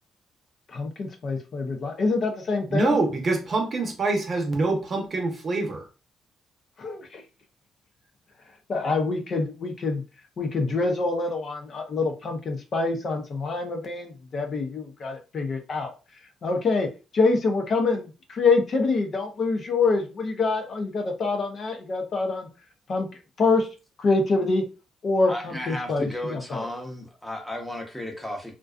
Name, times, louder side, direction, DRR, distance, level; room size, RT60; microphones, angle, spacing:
voice 1, 0.7-3.0 6.8-7.2 8.7-10.0 10.4-15.9 16.4-22.5 22.9-23.1 23.4-23.7 24.0-24.6 25.0-26.6, left 3 dB, 50° left, 4 dB, 0.5 m, -25 dB
voice 2, 2.7-5.9, right 3 dB, 45° right, 2 dB, 0.7 m, -25 dB
voice 3, 25.3-28.5, left 1 dB, 5° left, 1 dB, 0.8 m, -34 dB
2.5 x 2.2 x 2.3 m, 0.31 s
cardioid pair, 90°, 0 cm